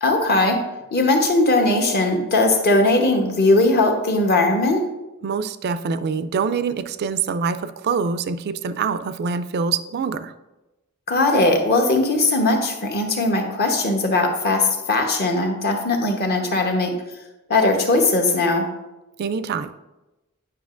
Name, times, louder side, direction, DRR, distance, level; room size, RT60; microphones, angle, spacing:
voice 1, 0.0-0.6 0.9-4.8 11.1-16.9 17.5-18.7, left 2 dB, 45° left, 3 dB, 0.9 m, -19 dB
voice 2, 5.2-10.3 19.2-19.7, right 5 dB, 45° right, 13 dB, 0.3 m, -25 dB
9.2 x 5.6 x 2.5 m, 1.0 s
head